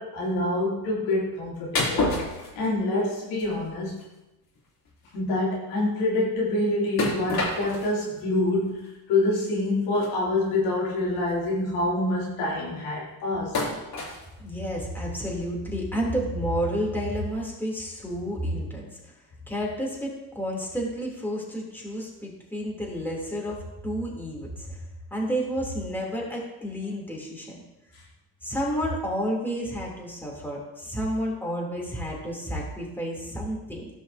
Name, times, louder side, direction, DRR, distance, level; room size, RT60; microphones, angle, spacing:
voice 1, 0.0-2.1 2.5-4.0 5.1-13.6, left 2 dB, 80° left, -6 dB, 3.1 m, -26 dB
sound 1, 1.8-3.1 3.4-3.6 4.0-4.1 4.6-4.7 4.9-5.0 7.0-8.0 8.7-8.8 9.9-10.1 10.9-11.0 11.3-11.5 13.5-14.2, left 2 dB, 50° left, 3.2 m, -28 dB
voice 2, 14.4-18.9 19.5-24.8 25.1-27.6 28.4-33.9, equal, 5° left, -3 dB, 3.1 m, -30 dB
14.5 x 5.7 x 2.8 m, 0.96 s
supercardioid pair, 65°, 47 cm